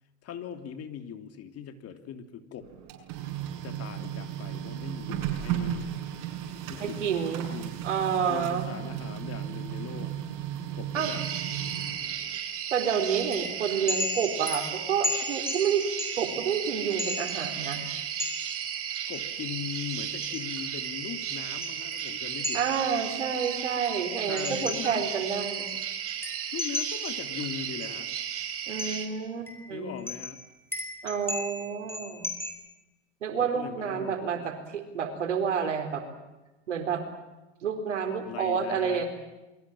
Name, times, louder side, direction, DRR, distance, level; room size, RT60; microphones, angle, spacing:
voice 1, 0.2-2.7 3.6-5.9 6.7-7.1 7.5-7.7 8.3-10.1 10.7-11.2 19.1-22.6 24.3-25.1 26.5-28.1 29.7-30.4 33.4-34.2 38.3-39.0, left 8 dB, 45° left, 8 dB, 3.1 m, -39 dB
Printer, 2.6-12.4, right 10 dB, 60° right, 6.7 m, -35 dB
voice 2, 6.8-7.5 7.8-8.7 10.9-11.1 12.7-15.9 16.2-17.8 22.5-25.7 28.7-29.9 31.0-32.3 33.2-36.0 36.7-37.0 37.6-39.1, right 7 dB, 90° right, 6 dB, 4.2 m, -29 dB
sound 1, 10.9-29.1, right 8 dB, 40° right, 5.1 m, -34 dB
sound 2, 13.3-18.5 19.1-19.2 20.2-22.9 23.4-25.3 25.7-25.8 26.1-27.3 27.8-27.9 28.8-29.2 29.5-32.5, left 2 dB, 5° left, 5.9 m, -36 dB
28.5 x 22.5 x 7.4 m, 1.1 s
hypercardioid pair, 90°, 35 cm